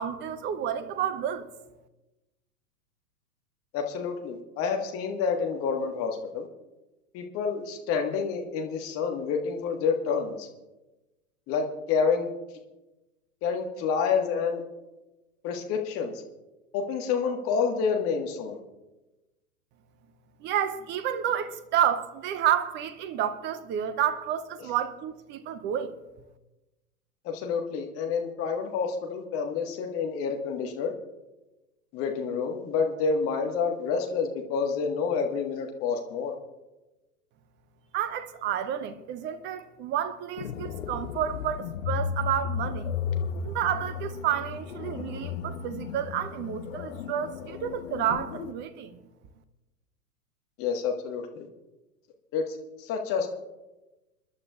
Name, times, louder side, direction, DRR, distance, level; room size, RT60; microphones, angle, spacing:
voice 1, 0.0-1.5 20.4-25.9 37.9-42.9 43.4-49.0, right 10 dB, 25° right, 0.8 m, -30 dB
voice 2, 3.7-6.5 7.1-10.5 11.5-12.3 13.4-14.6 15.4-16.2 16.7-18.6 27.2-30.9 31.9-36.3 50.6-51.5 52.3-53.3, left 5 dB, 30° left, 1.6 m, -28 dB
sound 1, 40.4-48.5, left 7 dB, 55° left, 1.0 m, -34 dB
27.5 x 11.5 x 2.4 m
figure-of-eight pair, 105°, 46 cm